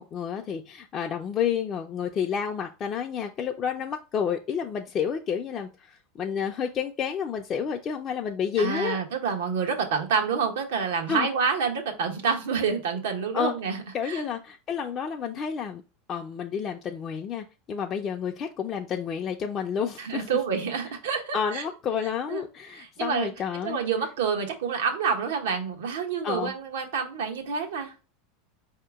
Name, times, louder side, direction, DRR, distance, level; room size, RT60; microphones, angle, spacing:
voice 1, 0.0-9.0 11.1-11.3 13.3-13.5 13.9-15.8 16.1-20.3 21.3-23.8 26.2-26.5, left 7 dB, 35° left, 0.5 m, -30 dB
voice 2, 8.6-14.3 20.0-21.6 22.3-22.4 22.7-23.3 23.6-27.9, right 6 dB, 80° right, 1.1 m, -28 dB
4.8 x 2.9 x 3.5 m
supercardioid pair, 115°, 0 cm